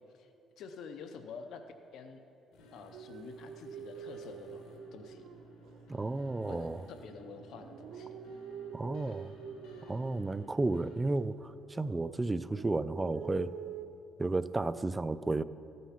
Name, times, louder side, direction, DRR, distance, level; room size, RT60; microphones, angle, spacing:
voice 1, 0.1-1.6 1.9-2.2 2.7-5.3 6.5-8.1, left 5 dB, 65° left, 7 dB, 0.7 m, -48 dB
sound 1, 2.5-11.0, right 1 dB, 85° left, 2.1 m, -56 dB
sound 2, 2.9-5.8 6.4-10.6 11.0-12.0 12.3-13.9, right 7 dB, 70° right, 0.7 m, -47 dB
voice 2, 5.9-6.8 8.7-9.3 9.9-13.5 14.2-15.4, right 2 dB, 15° right, 14 dB, 0.3 m, -32 dB
14.5 x 9.3 x 5.7 m, 2.7 s
cardioid pair, 130°, 0 cm